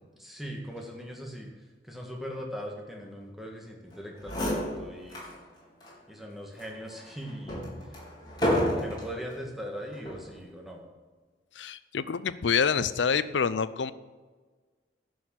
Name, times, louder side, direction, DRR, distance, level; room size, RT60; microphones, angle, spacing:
voice 1, 0.2-1.5 1.8-5.2 6.1-7.6 8.5-10.9, equal, ahead, 0 dB, 1.7 m, -40 dB
sound 1, 3.9-4.0 4.2-5.3 5.8-5.9 6.6-9.2 9.9-10.3, equal, 25° left, 3.8 m, -30 dB
voice 2, 11.6-13.9, left 6 dB, 90° left, 15 dB, 0.6 m, -27 dB
11.0 x 6.3 x 7.6 m, 1.4 s
head